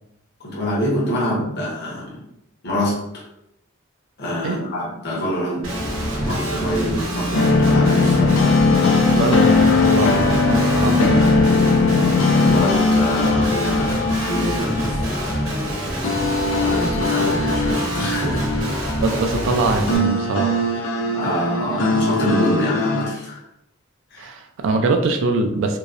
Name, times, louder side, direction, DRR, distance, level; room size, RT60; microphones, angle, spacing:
voice 1, 0.4-2.1 2.6-3.2 4.2-8.4 10.8-11.2 12.5-15.6 16.6-18.5 21.0-23.4 24.1-24.3, equal, 55° left, -5 dB, 0.8 m, -26 dB
Guitar, 5.6-20.0, equal, 85° right, 0.8 m, -26 dB
sound 1, 7.3-23.1, left 3 dB, 75° left, 0.4 m, -20 dB
voice 2, 9.1-11.2 19.0-20.6 24.2-25.8, right 3 dB, 65° right, 5 dB, 0.3 m, -22 dB
2.7 x 2.0 x 2.4 m, 0.82 s
head